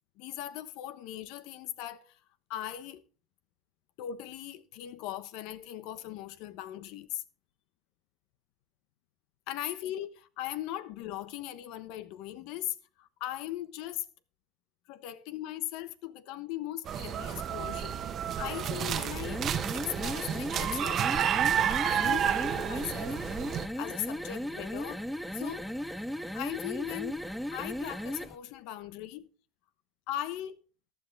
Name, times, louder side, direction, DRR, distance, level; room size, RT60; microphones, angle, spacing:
voice 1, 0.2-2.2 2.5-3.0 4.0-7.2 9.5-14.1 14.9-18.1 18.4-19.4 19.7-23.2 23.8-25.0 25.3-25.7 26.3-27.2 27.5-29.3 30.1-30.6, left 13 dB, 80° left, 1.1 m, -39 dB
sound 1, 16.9-23.7, right 9 dB, 50° right, 1.0 m, -30 dB
sound 2, 19.1-28.4, equal, 5° left, 0.8 m, -36 dB
14.5 x 11.0 x 3.4 m
cardioid pair, 110°, 0 cm